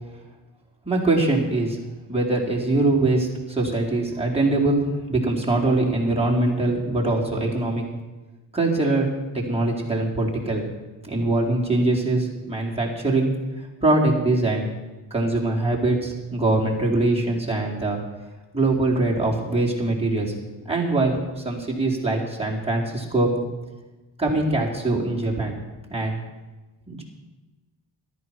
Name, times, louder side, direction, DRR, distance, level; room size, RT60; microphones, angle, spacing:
voice 1, 0.8-1.8 2.1-7.8 8.5-9.1 9.3-10.7 11.0-13.3 13.6-14.7 15.1-18.0 18.5-20.3 20.6-23.3 24.2-25.6 25.9-26.2 26.9-27.0, right 2 dB, 10° right, -4 dB, 4.3 m, -23 dB
14.0 x 12.0 x 6.1 m, 1.2 s
cardioid pair, 55°, 48 cm